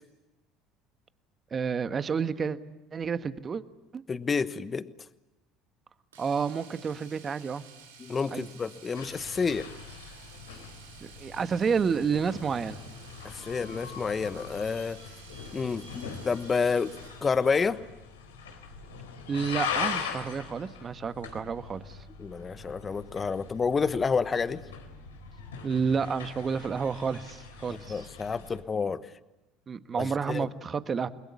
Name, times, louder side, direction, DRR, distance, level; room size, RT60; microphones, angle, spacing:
voice 1, 1.5-2.6 2.9-3.6 3.9-4.0 6.2-7.6 8.3-8.5 11.2-12.8 19.3-22.0 25.6-28.1 29.7-31.1, right 6 dB, 35° right, 11 dB, 1.4 m, -30 dB
voice 2, 4.1-4.9 8.0-9.7 13.2-15.0 15.5-16.9 17.2-17.8 22.2-24.6 27.7-29.1 30.0-30.5, left 5 dB, 30° left, 14 dB, 1.2 m, -29 dB
Domestic sounds home sounds, 6.1-17.4 19.5-19.6 19.9-20.0, right 5 dB, 85° right, 3.7 m, -52 dB
sound 1, 9.0-28.6, left 6 dB, 85° left, 3.4 m, -41 dB
29.0 x 21.5 x 8.4 m, 0.98 s
hypercardioid pair, 70°, 0 cm